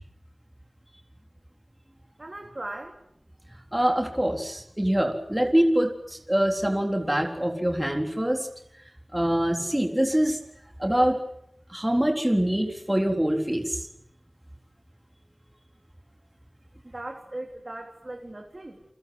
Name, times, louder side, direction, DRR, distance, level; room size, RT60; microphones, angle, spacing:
voice 1, 2.2-3.0 16.8-18.8, right 2 dB, 40° right, 2 dB, 3.4 m, -38 dB
voice 2, 3.7-8.5 9.1-10.4 10.8-11.2 11.7-13.9, right 1 dB, 10° right, 3 dB, 3.8 m, -24 dB
29.0 x 24.0 x 7.8 m, 0.75 s
wide cardioid pair, 70°, 0 cm